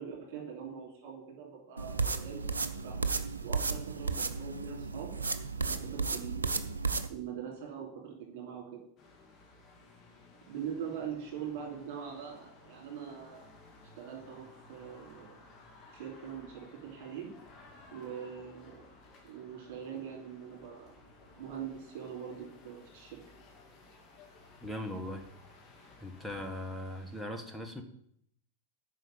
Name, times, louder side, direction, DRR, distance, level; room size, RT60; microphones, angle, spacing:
voice 1, 0.0-3.0 3.4-5.1 5.6-6.6 7.1-8.8 10.5-13.4 14.0-15.3 15.9-17.3 17.9-18.8 19.2-20.9 21.4-23.2, right 8 dB, 50° right, -2 dB, 3.3 m, -42 dB
sound 1, 1.8-7.1, right 4 dB, 75° right, 0.7 m, -33 dB
sound 2, 9.0-27.2, left 3 dB, 30° left, 2.4 m, -57 dB
voice 2, 24.6-25.3 26.0-27.8, left 1 dB, 5° right, 4 dB, 1.5 m, -39 dB
9.1 x 5.6 x 7.7 m, 0.69 s
figure-of-eight pair, 90°, 0 cm